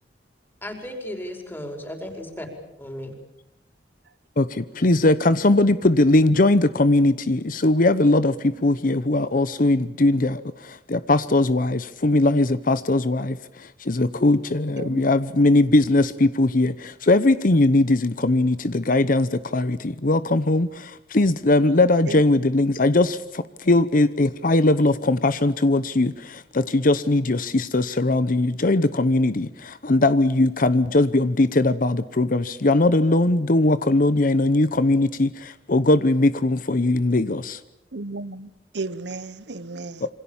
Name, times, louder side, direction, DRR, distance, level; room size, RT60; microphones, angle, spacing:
voice 1, 0.6-2.5 2.8-3.1, left 1 dB, 10° left, 5.2 m, -35 dB
voice 2, 4.4-37.6 40.0-40.1, left 2 dB, 50° left, 0.9 m, -20 dB
voice 3, 37.9-40.0, right 3 dB, 80° right, 1.1 m, -34 dB
27.5 x 25.5 x 7.3 m
head